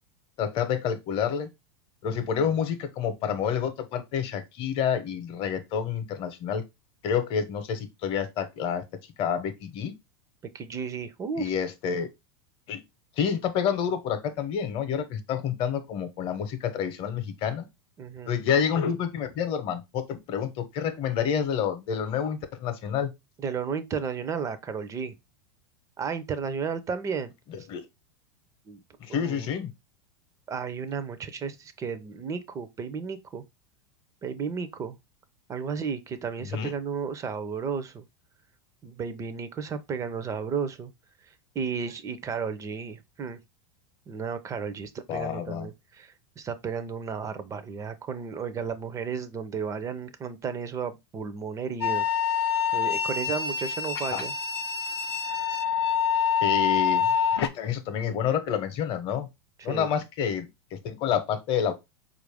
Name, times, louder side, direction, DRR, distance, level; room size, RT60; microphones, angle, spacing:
voice 1, 0.4-1.5 2.0-6.6 7.0-8.8 9.2-9.9 11.4-12.1 12.7-12.8 13.2-17.6 18.3-23.1 27.5-27.8 29.0-29.7 36.4-36.7 45.1-45.7 54.1-54.2 56.4-57.1 57.4-59.3 59.6-61.7, left 8 dB, 45° left, 0.8 m, -28 dB
voice 2, 2.0-2.6 10.5-11.5 18.0-18.4 23.4-25.1 26.0-27.3 28.7-28.8 29.1-29.5 30.5-33.4 34.2-35.0 35.5-38.1 38.8-40.9 41.5-43.4 44.1-52.1 52.7-54.3 59.6-59.9, right 6 dB, 25° right, 0.5 m, -33 dB
sound 1, 51.8-57.5, left 7 dB, 85° left, 0.5 m, -26 dB
4.4 x 2.5 x 3.3 m
hypercardioid pair, 115°, 13 cm